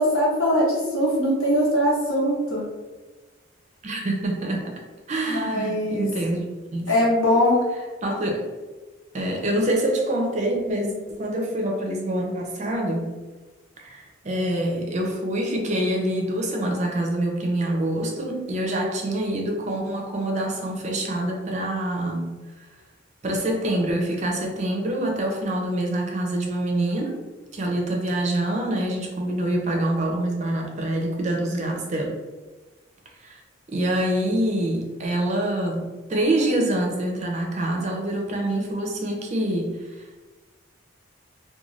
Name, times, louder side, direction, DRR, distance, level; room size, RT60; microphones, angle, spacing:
voice 1, 0.0-2.6 5.3-6.1 6.9-7.6, equal, 85° left, -5 dB, 1.0 m, -21 dB
voice 2, 3.8-4.7 5.1-6.4 6.7-6.9 8.0-8.4 9.1-13.1 13.8-22.3 23.2-27.1 27.5-32.2 33.2-33.4 33.7-40.2, right 1 dB, 35° right, 1 dB, 0.4 m, -26 dB
2.4 x 2.2 x 3.1 m, 1.2 s
head